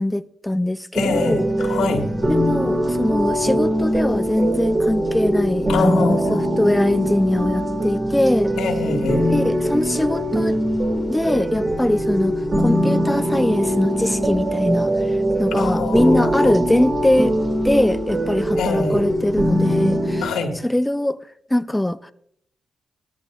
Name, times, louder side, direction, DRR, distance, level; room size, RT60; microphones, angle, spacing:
voice 1, 0.0-1.5 2.3-8.5 9.3-10.6 11.1-17.4 17.6-20.3 20.6-21.2 21.5-22.1, left 1 dB, 10° left, 0.5 m, -22 dB
voice 2, 0.9-2.1 5.7-6.4 8.6-9.3 15.5-16.5 18.6-19.1 20.2-20.6, left 4 dB, 85° left, 1.7 m, -25 dB
sound 1, 0.9-20.2, equal, 40° right, 2.1 m, -22 dB
18.5 x 13.5 x 2.4 m
supercardioid pair, 50°, 0 cm